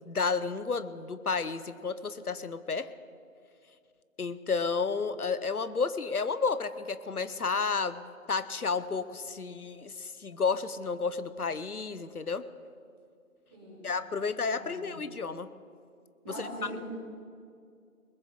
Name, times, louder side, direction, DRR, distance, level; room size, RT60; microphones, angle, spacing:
voice 1, 0.0-2.9 4.2-12.4 13.8-15.5 16.3-16.5, left 4 dB, 90° left, 14 dB, 0.9 m, -31 dB
voice 2, 13.5-13.8 14.5-15.0 16.2-16.9, equal, 5° right, -8 dB, 1.4 m, -42 dB
20.5 x 7.2 x 6.7 m, 2.3 s
figure-of-eight pair, 165°, 43 cm